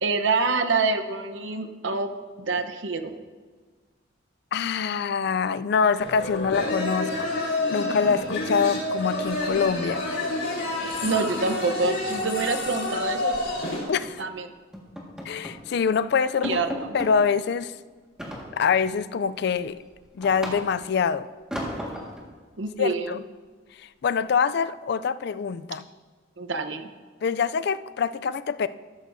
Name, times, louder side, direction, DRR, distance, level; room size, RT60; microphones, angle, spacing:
voice 1, 0.0-2.1 2.4-3.1 11.0-13.4 14.2-14.5 16.4-16.7 22.6-23.1 26.4-26.9, right 3 dB, 75° right, 8 dB, 0.9 m, -26 dB
voice 2, 4.5-10.0 13.9-14.2 15.3-16.6 16.9-17.7 18.5-19.8 20.2-21.3 22.8-23.2 23.8-25.8 27.2-28.7, left 6 dB, 55° left, 14 dB, 0.3 m, -25 dB
sound 1, 6.0-13.9, left 2 dB, 90° left, 3.6 m, -29 dB
sound 2, 9.3-10.1 10.4-10.6 10.9-11.1 11.4-11.5 11.9-13.5 14.0-14.3 14.7-15.7 16.0-16.1 16.4-17.2 18.2-18.9 19.4-21.0 21.5-22.3, equal, 5° right, 1.6 m, -37 dB
13.5 x 13.0 x 2.7 m, 1.4 s
head